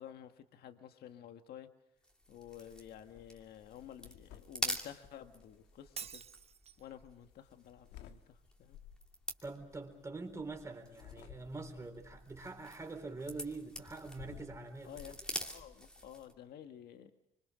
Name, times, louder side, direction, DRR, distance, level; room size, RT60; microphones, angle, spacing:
voice 1, 0.0-1.7 2.3-6.2 6.8-8.8 14.8-17.1, left 10 dB, 70° left, 7 dB, 1.7 m, -52 dB
sound 1, 2.0-16.4, equal, 5° left, 2.6 m, -47 dB
sound 2, 3.0-3.3 3.7-6.2 7.3-8.2 8.7-9.1 10.8-11.8 13.4-15.2, left 10 dB, 85° left, 1.6 m, -55 dB
Shatter, 6.0-6.9, right 8 dB, 35° right, 0.9 m, -47 dB
voice 2, 9.4-15.0, right 3 dB, 15° right, 4 dB, 4.2 m, -44 dB
26.0 x 24.5 x 6.3 m, 0.77 s
cardioid pair, 110°, 17 cm